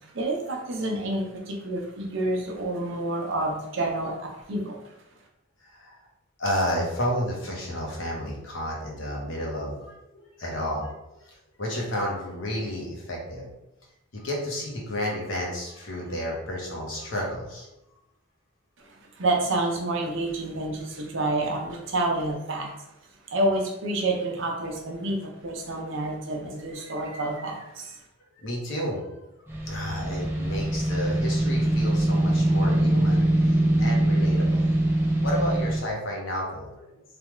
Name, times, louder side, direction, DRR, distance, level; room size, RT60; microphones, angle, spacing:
voice 1, 0.1-4.8 19.2-22.7 23.3-28.0, right 2 dB, 60° right, 1 dB, 0.6 m, -28 dB
voice 2, 6.4-10.9 11.2-13.5 14.1-17.7 28.4-29.2 29.6-33.2 33.8-34.7 35.2-37.0, equal, 65° left, -2 dB, 0.9 m, -31 dB
sound 1, 29.5-35.8, right 1 dB, 10° right, 0.4 m, -23 dB
3.4 x 2.3 x 3.0 m, 0.91 s
head